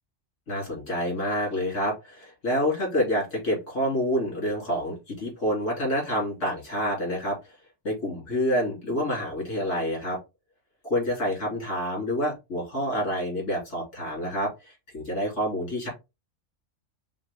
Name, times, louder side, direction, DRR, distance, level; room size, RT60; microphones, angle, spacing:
voice 1, 0.5-7.5 7.8-10.2 10.8-15.9, equal, 65° left, -3 dB, 3.0 m, -28 dB
5.8 x 2.4 x 3.4 m, 0.24 s
omnidirectional pair, 1.3 m